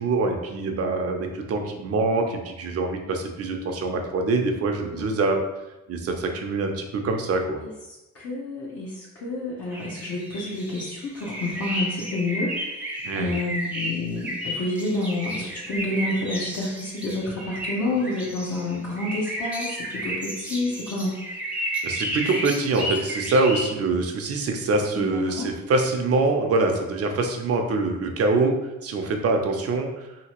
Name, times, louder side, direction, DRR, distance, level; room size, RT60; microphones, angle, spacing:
voice 1, 0.0-5.4 5.9-7.6 13.0-13.3 21.8-28.5 28.8-30.1, right 3 dB, 50° right, 4 dB, 0.6 m, -24 dB
voice 2, 4.9-5.2 7.6-12.5 13.1-21.2 25.0-25.5, left 2 dB, 55° left, -5 dB, 0.7 m, -29 dB
sound 1, 9.7-23.7, equal, 5° right, 0.6 m, -32 dB
2.9 x 2.8 x 2.9 m, 0.99 s
cardioid pair, 90°, 30 cm